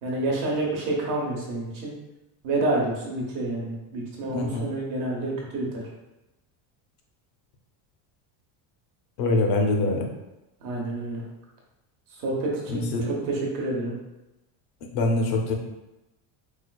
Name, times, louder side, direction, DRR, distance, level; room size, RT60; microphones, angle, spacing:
voice 1, 0.0-1.9 2.4-5.8 10.6-11.2 12.2-14.0, right 2 dB, 40° right, -2 dB, 0.8 m, -28 dB
voice 2, 4.3-4.6 9.2-10.1 12.7-13.1 14.9-15.5, left 2 dB, 50° left, 2 dB, 0.6 m, -24 dB
4.4 x 2.3 x 2.2 m, 0.97 s
cardioid pair, 180°, 50 cm